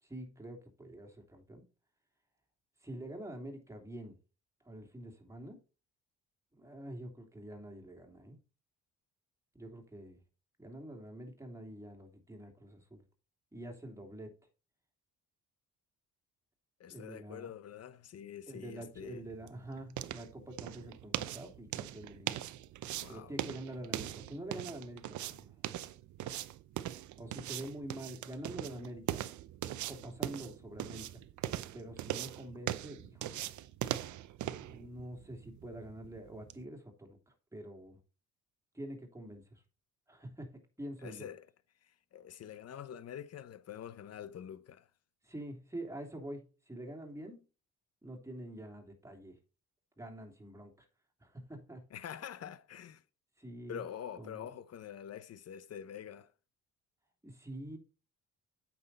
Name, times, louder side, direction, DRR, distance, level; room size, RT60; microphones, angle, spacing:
voice 1, 0.0-1.6 2.8-4.2 4.6-5.6 6.6-8.4 9.5-10.2 10.6-13.0 13.5-14.3 16.9-17.5 18.5-22.4 23.1-25.5 27.2-29.3 29.8-31.2 31.7-33.5 34.6-38.0 38.7-39.6 40.1-41.3 45.2-47.4 48.0-49.4 50.0-50.9 51.2-51.9 53.4-53.8 54.2-54.5 57.2-57.8, right 1 dB, 10° right, 2.9 m, -46 dB
voice 2, 16.8-19.2 23.0-23.3 41.0-41.5 41.8-44.9 51.9-53.0 53.7-56.3, left 9 dB, 55° left, 0.9 m, -46 dB
sound 1, 18.8-36.6, right 13 dB, 75° right, 0.7 m, -41 dB
8.6 x 6.1 x 4.1 m
cardioid pair, 90°, 30 cm